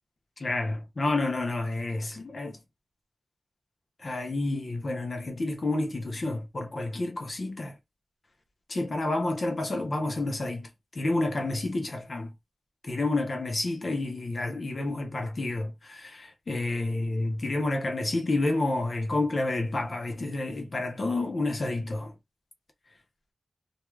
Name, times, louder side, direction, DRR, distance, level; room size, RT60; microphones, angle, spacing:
voice 1, 0.4-2.6 4.0-7.8 8.7-12.3 12.8-22.1, left 2 dB, 55° left, 0.6 m, -29 dB
2.3 x 2.1 x 3.1 m
wide cardioid pair, 100°, 0 cm